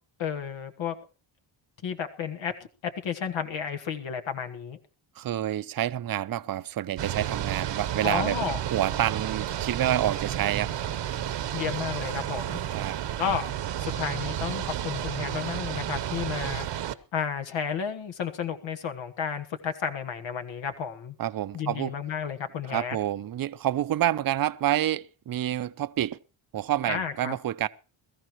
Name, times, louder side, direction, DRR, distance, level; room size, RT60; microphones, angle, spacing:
voice 1, 0.2-0.9 1.8-2.5 2.8-4.8 8.0-8.6 11.5-12.6 13.2-13.4 13.8-21.1 21.5-23.0 26.9-27.4, left 7 dB, 75° left, 1.5 m, -32 dB
voice 2, 5.2-8.4 8.7-10.7 12.7-13.0 21.2-21.9 22.7-26.2 26.5-27.7, right 12 dB, 50° right, 0.7 m, -28 dB
sound 1, 7.0-16.9, right 11 dB, 65° right, 1.0 m, -31 dB
21.5 x 13.5 x 3.1 m
cardioid pair, 120°, 46 cm